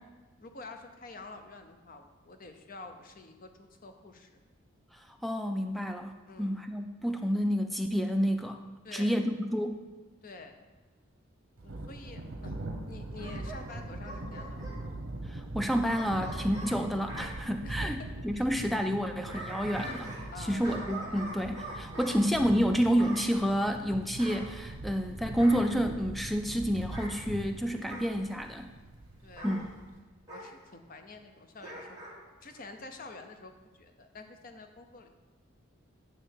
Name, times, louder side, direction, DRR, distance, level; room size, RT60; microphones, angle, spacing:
voice 1, 0.4-4.3 6.3-6.6 8.8-9.2 10.2-10.7 11.6-12.6 12.8-14.6 17.6-18.1 18.3-18.5 20.3-20.7 21.9-22.0 29.2-29.7 30.3-35.2, left 3 dB, 40° left, 6 dB, 0.6 m, -48 dB
voice 2, 5.2-8.6 8.9-9.8 15.3-28.7 29.4-29.7, equal, ahead, 5 dB, 0.3 m, -29 dB
Thunder, 11.6-30.0, right 2 dB, 90° right, 0.8 m, -42 dB
Bark / Growling, 13.2-14.8 15.9-17.3 18.9-20.3 20.6-22.2 23.0-23.3 24.2-25.0 25.4-25.7 26.8-27.1 27.9-28.1 29.4-29.6 30.3-30.5 31.6-32.2 32.5-32.6, right 1 dB, 15° right, 1.6 m, -43 dB
8.9 x 3.3 x 6.4 m, 1.3 s
head